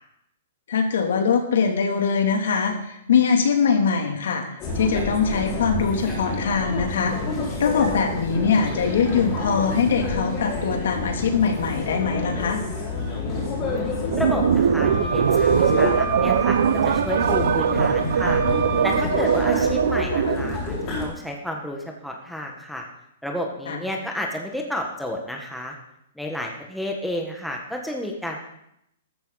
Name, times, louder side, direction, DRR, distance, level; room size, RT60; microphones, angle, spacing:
voice 1, 0.7-4.4 4.7-7.2 7.6-12.6 23.7-23.8, left 6 dB, 70° left, 3 dB, 2.9 m, -22 dB
sound 1, 4.6-21.1, left 2 dB, 25° left, 4.9 m, -29 dB
voice 2, 13.4-13.9 14.2-18.4 18.8-22.8 23.2-25.7 26.1-28.4, left 1 dB, ahead, 0 dB, 1.4 m, -31 dB
sound 2, 14.1-20.6, right 8 dB, 70° right, 0.8 m, -21 dB
Wind instrument woodwind instrument, 14.7-19.0, right 4 dB, 35° right, 4.3 m, -33 dB
14.5 x 13.5 x 4.1 m, 0.77 s
hypercardioid pair, 165°, 0 cm